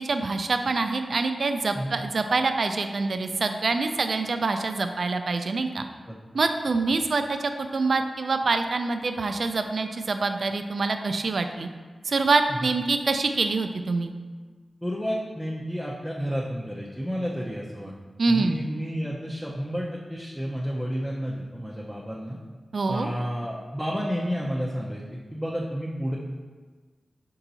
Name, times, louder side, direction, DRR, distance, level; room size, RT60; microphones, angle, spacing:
voice 1, 0.0-5.9 6.3-11.7 12.0-14.1 18.2-18.5 22.7-23.1, right 3 dB, 65° right, 7 dB, 0.3 m, -25 dB
voice 2, 14.8-17.9 18.3-22.4 22.9-26.2, equal, 5° right, -4 dB, 0.6 m, -31 dB
4.5 x 2.8 x 3.9 m, 1.4 s
cardioid pair, 45°, 0 cm